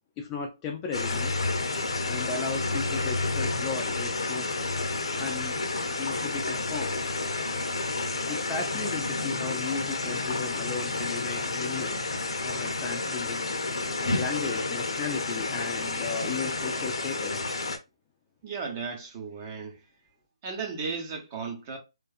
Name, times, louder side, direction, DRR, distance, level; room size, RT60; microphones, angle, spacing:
voice 1, 0.2-1.3 2.1-4.5 5.2-5.6 6.0-6.9 8.3-12.1 12.4-13.5 14.2-17.4, left 5 dB, 20° left, 0.4 m, -35 dB
sound 1, 0.9-17.8, left 3 dB, 65° left, 0.6 m, -30 dB
voice 2, 18.4-19.8 20.4-21.8, right 5 dB, 30° right, 0.8 m, -35 dB
2.6 x 2.3 x 2.3 m
figure-of-eight pair, 150°, 3 cm